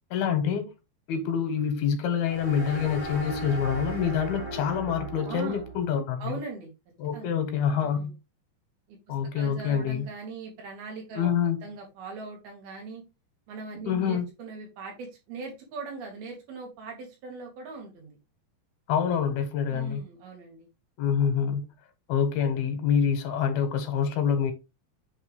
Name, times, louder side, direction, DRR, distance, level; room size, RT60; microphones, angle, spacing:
voice 1, 0.1-0.7 1.1-6.3 7.0-8.1 9.1-10.1 11.2-11.6 13.9-14.2 18.9-20.0 21.0-21.6 22.1-24.5, left 7 dB, 90° left, 3.2 m, -26 dB
sound 1, 2.2-5.9, right 2 dB, 70° left, 0.7 m, -37 dB
voice 2, 5.3-5.7 6.2-6.7 7.1-7.3 7.7-8.1 8.9-11.4 11.6-13.0 13.5-18.2 19.7-20.7, right 4 dB, 85° right, 4.1 m, -40 dB
8.5 x 3.7 x 3.4 m
omnidirectional pair, 4.3 m